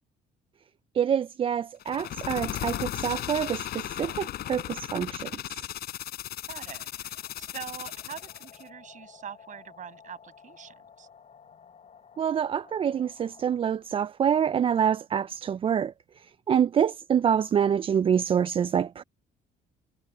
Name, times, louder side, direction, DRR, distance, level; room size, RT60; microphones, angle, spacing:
voice 1, 0.9-5.4 12.2-19.0, right 8 dB, 30° right, 0.4 m, -26 dB
sound 1, 1.8-8.6, left 13 dB, 65° left, 6.6 m, -36 dB
voice 2, 6.5-11.1, right 8 dB, 50° right, 7.2 m, -44 dB
sound 2, 6.7-14.1, left 7 dB, 45° left, 6.3 m, -54 dB
cardioid pair, 110°, 17 cm